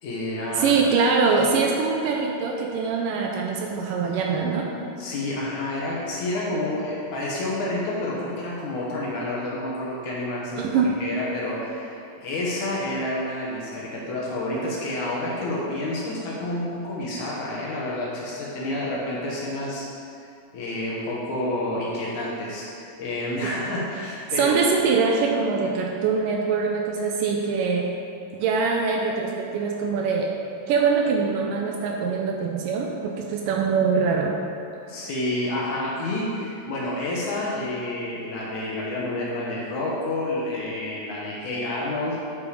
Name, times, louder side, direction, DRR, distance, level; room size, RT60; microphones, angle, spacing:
voice 1, 0.0-0.8 5.0-19.9 20.5-24.6 34.9-42.2, left 1 dB, 65° left, -5 dB, 2.3 m, -29 dB
voice 2, 0.6-4.7 10.6-11.0 24.4-27.9 28.3-30.3 30.7-34.4, right 5 dB, 80° right, 1 dB, 2.1 m, -23 dB
8.5 x 5.3 x 4.9 m, 2.6 s
omnidirectional pair, 4.1 m